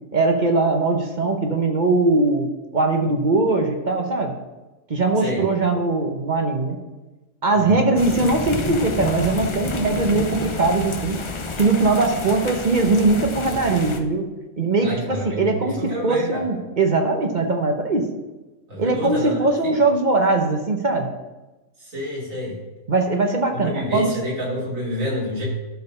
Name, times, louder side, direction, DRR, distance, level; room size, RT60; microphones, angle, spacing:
voice 1, 0.1-2.5 2.7-4.3 4.9-6.8 7.4-11.2 11.6-14.2 14.6-18.1 18.8-21.1 22.9-24.1, right 3 dB, 40° right, 3 dB, 0.9 m, -20 dB
sound 1, 8.0-14.0, left 4 dB, 45° left, 0.4 m, -29 dB
voice 2, 14.8-16.4 18.7-19.4 19.6-19.8 21.8-22.6 23.5-25.4, left 1 dB, 70° right, -5 dB, 3.5 m, -28 dB
12.0 x 4.7 x 5.4 m, 1.1 s
omnidirectional pair, 1.5 m